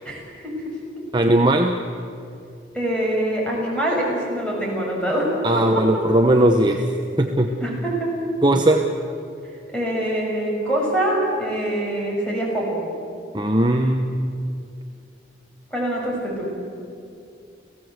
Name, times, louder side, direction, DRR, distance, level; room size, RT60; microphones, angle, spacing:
voice 1, 0.0-0.5 2.7-5.3 5.5-5.8 7.6-8.1 9.7-12.8 15.7-16.5, right 1 dB, 5° left, -3 dB, 6.2 m, -24 dB
voice 2, 1.1-1.8 5.4-6.8 7.2-7.5 8.4-8.9 13.3-14.5, right 1 dB, 25° right, 4 dB, 0.9 m, -18 dB
30.0 x 16.5 x 8.1 m, 2.5 s
head